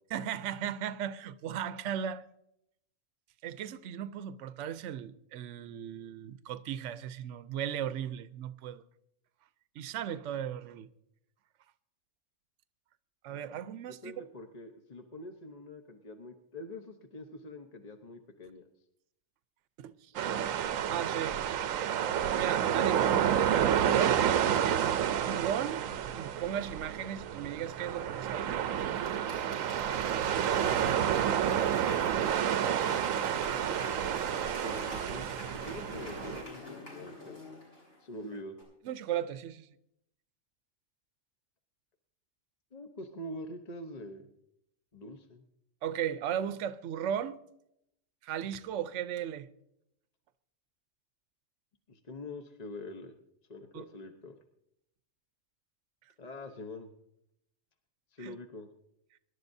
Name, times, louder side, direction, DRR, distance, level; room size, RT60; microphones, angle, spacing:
voice 1, 0.1-2.3 3.4-8.8 9.8-10.9 13.2-14.1 19.8-20.1 20.9-21.4 22.4-23.1 23.4-24.9 25.3-25.8 26.1-28.5 38.3-38.4 38.8-39.7 45.8-47.4 48.2-49.5 53.7-53.9 58.2-58.4, right 9 dB, 70° right, 0.9 m, -36 dB
voice 2, 14.0-18.7 30.4-31.0 34.6-37.4 38.0-38.5 42.7-44.2 44.9-45.4 51.9-53.1 53.5-54.4 56.2-56.9 58.1-58.7, left 1 dB, 35° left, 0.9 m, -45 dB
sound 1, 20.2-36.4, right 9 dB, 85° right, 1.1 m, -30 dB
Applause / Crowd, 28.8-38.2 38.6-38.7, left 1 dB, 75° left, 6.7 m, -45 dB
25.0 x 11.5 x 2.7 m
omnidirectional pair, 1.4 m